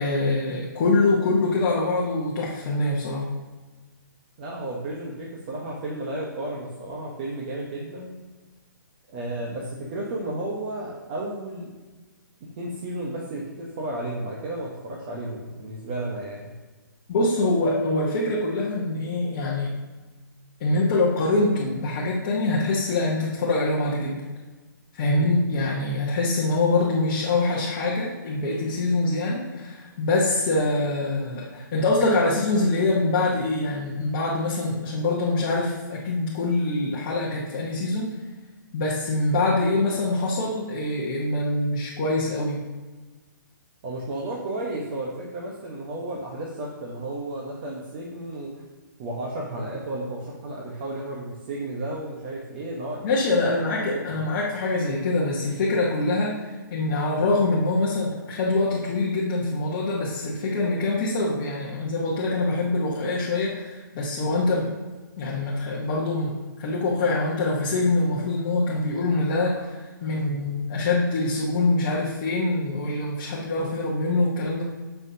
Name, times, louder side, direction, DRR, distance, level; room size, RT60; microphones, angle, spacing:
voice 1, 0.0-3.3 17.1-19.7 20.6-24.2 24.9-38.1 38.7-42.6 53.0-64.7 65.2-74.6, left 2 dB, 25° left, -5 dB, 1.2 m, -24 dB
voice 2, 4.4-8.1 9.1-11.8 12.6-16.5 25.1-25.3 43.8-48.6 49.0-53.1 53.4-53.7 54.1-54.2, right 1 dB, 25° right, -3 dB, 1.0 m, -33 dB
13.0 x 5.7 x 2.8 m, 1.3 s
hypercardioid pair, 170°, 11 cm